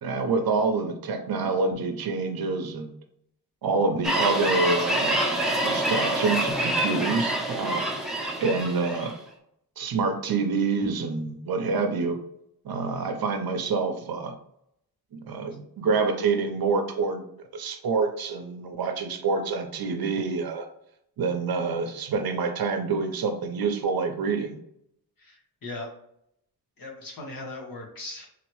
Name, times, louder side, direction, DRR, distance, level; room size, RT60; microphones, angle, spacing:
voice 1, 0.0-2.9 3.6-5.2 5.6-7.8 8.4-9.1 9.8-12.2 12.6-14.3 15.1-17.2 17.5-20.7 21.2-24.6, right 4 dB, 65° right, 5 dB, 0.8 m, -27 dB
sound 1, 4.0-9.1, right 1 dB, ahead, 0.9 m, -26 dB
voice 2, 25.2-25.9 26.8-28.3, left 2 dB, 55° left, -1 dB, 1.5 m, -38 dB
4.0 x 2.9 x 3.1 m, 0.74 s
cardioid pair, 85°, 40 cm